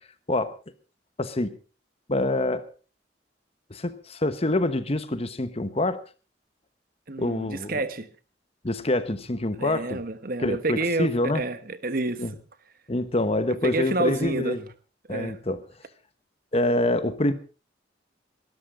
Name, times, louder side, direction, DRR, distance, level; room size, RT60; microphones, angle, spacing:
voice 1, 1.2-1.5 2.1-2.6 3.7-6.0 7.2-7.8 8.6-10.0 10.4-11.4 12.2-12.3 12.9-14.6 15.1-15.6 16.5-17.3, left 1 dB, 35° left, 1.1 m, -26 dB
voice 2, 7.1-8.1 9.5-11.1 11.3-12.2 13.6-14.6 15.1-15.3, right 2 dB, 55° right, 1.3 m, -28 dB
22.0 x 13.0 x 3.7 m
head